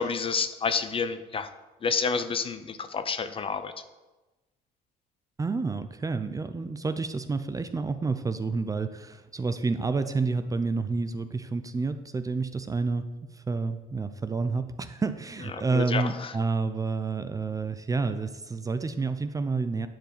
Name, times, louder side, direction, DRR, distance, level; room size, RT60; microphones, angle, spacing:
voice 1, 0.0-1.5 1.8-3.8 15.7-16.3, left 5 dB, 30° left, 11 dB, 0.7 m, -29 dB
voice 2, 5.4-19.9, right 4 dB, 20° right, 10 dB, 0.6 m, -29 dB
10.0 x 4.6 x 7.7 m, 1.1 s
cardioid pair, 110°, 17 cm